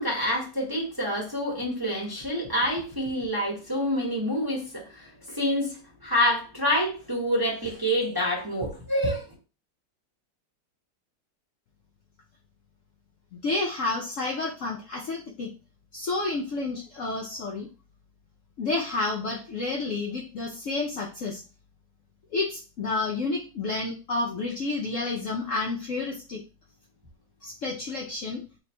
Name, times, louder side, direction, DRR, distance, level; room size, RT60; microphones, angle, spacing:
voice 1, 0.0-9.3, equal, 15° right, -3 dB, 0.8 m, -27 dB
voice 2, 13.4-15.5 15.9-17.7 18.6-21.4 22.3-26.4 27.4-28.4, left 3 dB, 65° left, -1 dB, 0.8 m, -30 dB
3.4 x 3.1 x 4.3 m, 0.34 s
omnidirectional pair, 1.9 m